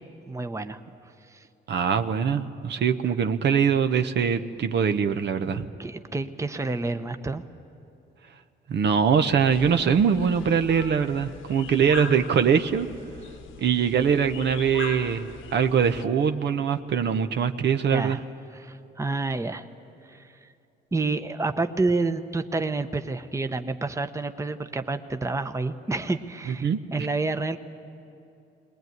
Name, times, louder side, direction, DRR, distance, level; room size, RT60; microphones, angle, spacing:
voice 1, 0.3-0.8 1.3-1.4 5.8-7.4 17.9-18.2 18.5-19.6 20.0-20.5 20.9-27.6, right 3 dB, 15° right, 8 dB, 0.9 m, -29 dB
voice 2, 1.7-5.7 8.7-12.9 13.6-18.2 26.5-26.8, right 7 dB, 60° right, 8 dB, 1.0 m, -23 dB
sound 1, 9.5-16.1, left 6 dB, 80° left, 1.2 m, -40 dB
20.5 x 20.5 x 9.4 m, 2.7 s
cardioid pair, 90°, 20 cm